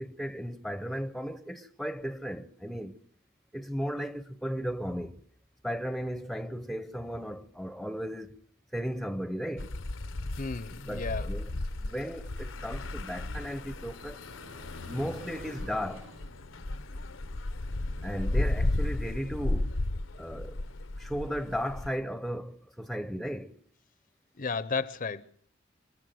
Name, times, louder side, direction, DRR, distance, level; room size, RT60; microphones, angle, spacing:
voice 1, 0.0-3.0 3.5-5.2 5.6-8.4 8.7-9.7 10.9-11.5 11.8-14.2 14.9-16.1 18.0-19.8 20.2-20.6 21.0-23.6, equal, ahead, 0.8 m, -35 dB
sound 1, 9.6-21.9, left 2 dB, 75° left, 0.9 m, -34 dB
voice 2, 10.4-11.3 24.4-25.2, left 4 dB, 45° left, 0.8 m, -33 dB
sound 2, 13.1-17.2, right 1 dB, 70° right, 2.0 m, -53 dB
27.0 x 13.0 x 7.8 m
head